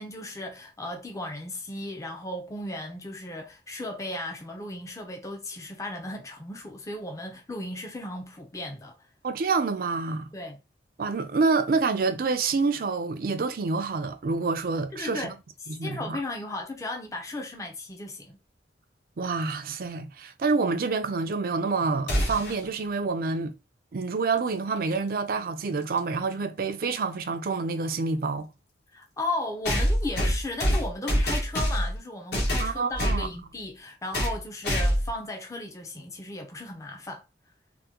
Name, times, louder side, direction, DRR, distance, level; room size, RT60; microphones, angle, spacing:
voice 1, 0.0-9.0 10.3-10.6 14.9-15.3 15.6-18.4 28.9-37.2, left 2 dB, 15° left, 0.5 m, -36 dB
voice 2, 9.2-10.3 11.0-15.3 15.7-16.2 19.2-23.5 23.9-28.5 32.6-33.3, right 4 dB, 50° right, 0.4 m, -27 dB
sound 1, 22.1-22.6 24.8-24.9 26.0-26.1 29.6-32.0 32.3-33.2 34.1-34.4 34.6-35.1, equal, 65° left, 1.1 m, -25 dB
3.4 x 2.1 x 2.9 m
head